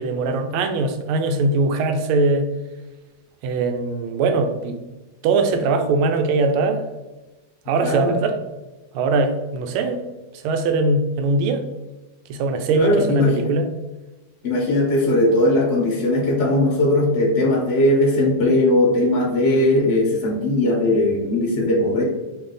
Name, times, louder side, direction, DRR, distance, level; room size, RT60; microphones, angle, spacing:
voice 1, 0.0-2.5 3.4-4.8 5.2-6.8 7.7-8.4 8.9-10.0 10.4-11.6 12.3-13.7, right 3 dB, 80° right, 6 dB, 1.4 m, -21 dB
voice 2, 7.8-8.1 12.7-13.5 14.4-22.0, left 1 dB, 50° left, -3 dB, 0.8 m, -19 dB
4.7 x 2.7 x 3.9 m, 1.1 s
omnidirectional pair, 2.4 m